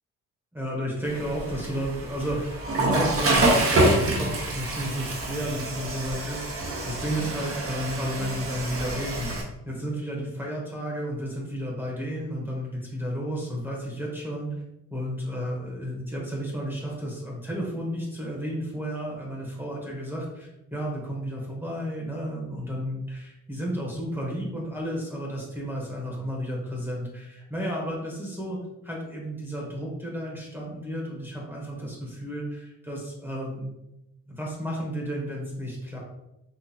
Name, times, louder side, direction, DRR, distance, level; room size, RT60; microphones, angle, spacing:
voice 1, 0.5-14.5 14.9-28.6 28.8-33.7 34.3-36.0, equal, 5° right, -3 dB, 1.2 m, -32 dB
Water / Toilet flush, 1.0-9.4, right 1 dB, 50° right, 1.0 m, -27 dB
4.2 x 2.7 x 2.9 m, 0.89 s
cardioid pair, 90°, 30 cm